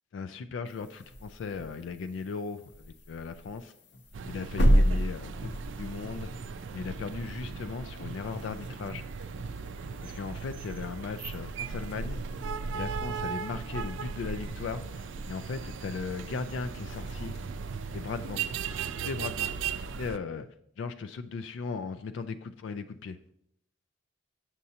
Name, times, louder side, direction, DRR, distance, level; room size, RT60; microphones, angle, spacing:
voice 1, 0.1-3.7 4.3-5.5 5.8-6.4 6.7-9.1 10.0-12.2 12.7-17.4 17.9-18.4 19.0-19.5 20.0-20.5 20.8-23.2, left 4 dB, 80° left, 11 dB, 0.3 m, -37 dB
sound 1, 0.7-20.1, equal, 65° left, 0.7 m, -35 dB
huinan street corner, 4.1-20.2, right 5 dB, 85° right, 0.4 m, -37 dB
7.4 x 6.6 x 2.8 m, 0.72 s
head